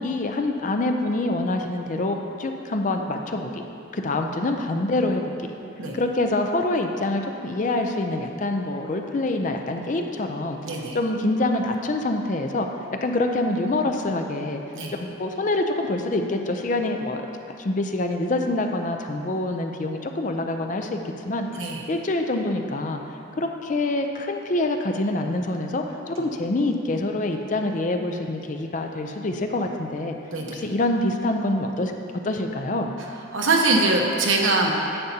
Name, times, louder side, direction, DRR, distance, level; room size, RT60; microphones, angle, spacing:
voice 1, 0.0-3.6 3.9-5.5 5.9-10.6 10.9-12.7 13.0-14.6 14.9-17.2 17.6-21.0 21.2-21.5 21.9-23.0 23.4-30.1 30.5-31.9 32.2-32.9, left 2 dB, 40° left, 4 dB, 0.5 m, -26 dB
voice 2, 10.6-11.0 14.7-14.9 21.5-21.8 30.3-30.6 33.3-34.7, right 3 dB, 70° right, 0 dB, 1.0 m, -22 dB
10.0 x 8.3 x 2.8 m, 2.7 s
head